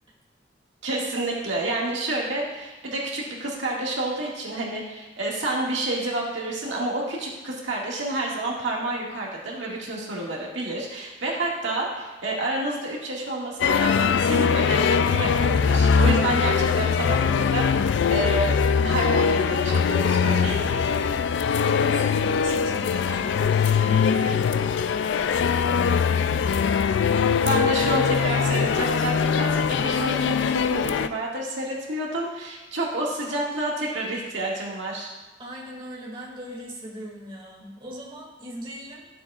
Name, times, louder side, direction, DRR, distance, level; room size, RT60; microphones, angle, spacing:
voice 1, 0.8-18.6 18.8-21.0 27.4-35.1, right 2 dB, 75° right, -3 dB, 2.0 m, -29 dB
sound 1, 13.6-31.1, left 6 dB, 65° left, 0.3 m, -22 dB
voice 2, 21.7-26.6 35.4-39.0, right 1 dB, 25° right, -4 dB, 2.2 m, -40 dB
12.0 x 7.6 x 2.4 m, 1.1 s
head